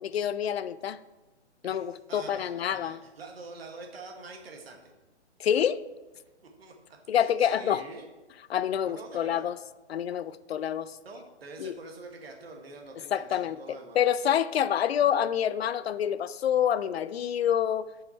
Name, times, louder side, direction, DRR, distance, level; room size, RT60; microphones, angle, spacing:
voice 1, 0.0-1.0 1.6-3.0 5.4-5.8 7.1-7.8 8.5-9.6 9.9-11.0 11.6-11.7 13.1-17.9, left 9 dB, 65° left, 16 dB, 0.5 m, -27 dB
voice 2, 1.6-4.8 6.4-8.1 8.8-9.5 11.0-14.0, right 3 dB, 60° right, 2 dB, 1.4 m, -46 dB
10.0 x 5.7 x 4.1 m, 1.1 s
hypercardioid pair, 180°, 34 cm